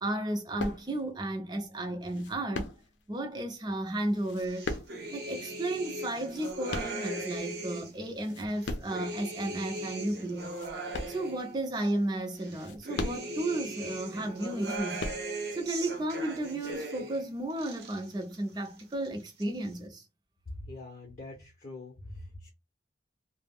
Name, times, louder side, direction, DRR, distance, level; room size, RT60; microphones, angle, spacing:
voice 1, 0.0-2.7 3.1-4.7 5.1-10.6 11.1-15.0 15.5-20.0, right 1 dB, 25° right, 0.5 m, -33 dB
sound 1, 0.6-1.2 2.0-3.2 4.1-5.3 6.0-7.4 7.9-9.1 9.6-9.7 10.3-11.7 12.4-13.6 14.5-15.6 16.4-16.8, left 2 dB, 85° left, 0.5 m, -39 dB
sound 2, 4.4-8.0 8.5-11.9 12.4-17.2 17.5-18.4 18.7-19.4, right 2 dB, 60° right, 0.8 m, -39 dB
voice 2, 20.6-22.5, left 2 dB, 40° left, 0.6 m, -44 dB
2.3 x 2.0 x 3.4 m
head